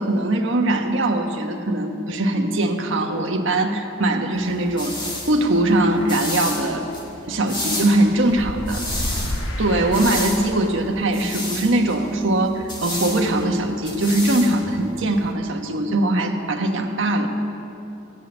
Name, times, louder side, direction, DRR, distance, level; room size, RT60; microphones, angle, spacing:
voice 1, 0.0-5.0 5.3-6.9 7.3-8.8 9.6-17.3, right 1 dB, 65° right, 3 dB, 1.1 m, -21 dB
sound 1, 4.4-15.3, left 1 dB, 25° left, 1.7 m, -32 dB
sound 2, 8.2-10.8, left 1 dB, 70° left, 1.7 m, -30 dB
15.5 x 6.1 x 9.7 m, 2.7 s
head